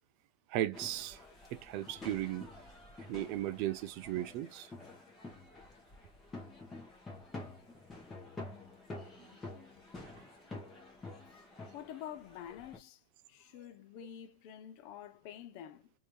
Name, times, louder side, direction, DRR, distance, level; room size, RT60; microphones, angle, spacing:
voice 1, 0.5-1.2 1.5-2.5 3.1-4.7 9.2-9.3, right 13 dB, 45° right, 0.5 m, -36 dB
sound 1, 0.7-12.8, left 2 dB, 15° left, 1.3 m, -49 dB
voice 2, 11.7-13.0 13.3-15.9, left 10 dB, 50° left, 0.6 m, -48 dB
3.2 x 2.7 x 3.1 m
hypercardioid pair, 130°, 0 cm